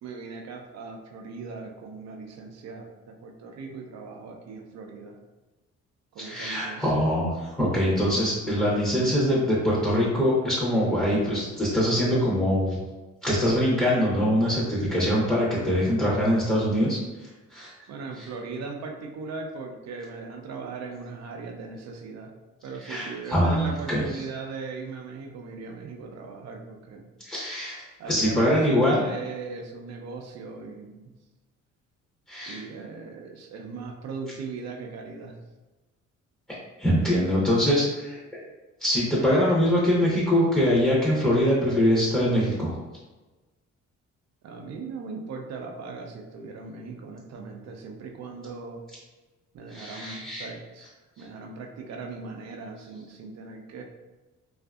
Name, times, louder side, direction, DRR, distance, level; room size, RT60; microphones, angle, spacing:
voice 1, 0.0-5.2 6.1-6.9 17.9-22.3 22.6-27.1 28.0-31.1 32.5-35.4 44.4-48.8 49.5-50.9 51.2-53.8, right 4 dB, 60° right, 3 dB, 0.5 m, -38 dB
voice 2, 6.2-12.8 13.2-17.0 17.5-17.7 18.2-18.3 22.8-24.0 27.2-29.0 32.3-32.6 36.8-38.4 38.8-42.7 49.7-50.4, equal, 5° left, -7 dB, 0.6 m, -23 dB
2.6 x 2.4 x 2.3 m, 1.2 s
cardioid pair, 90°, 30 cm